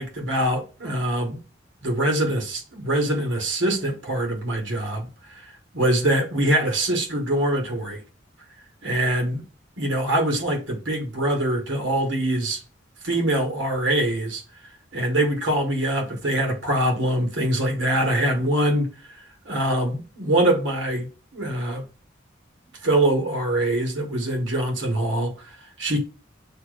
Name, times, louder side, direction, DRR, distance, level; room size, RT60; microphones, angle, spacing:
voice 1, 0.0-1.4 1.8-5.5 5.7-8.0 8.8-9.4 9.8-12.6 13.0-14.4 14.9-18.9 19.5-21.1 21.3-21.8 22.8-26.0, right 1 dB, 85° right, 1.8 m, -23 dB
7.1 x 3.0 x 2.5 m
head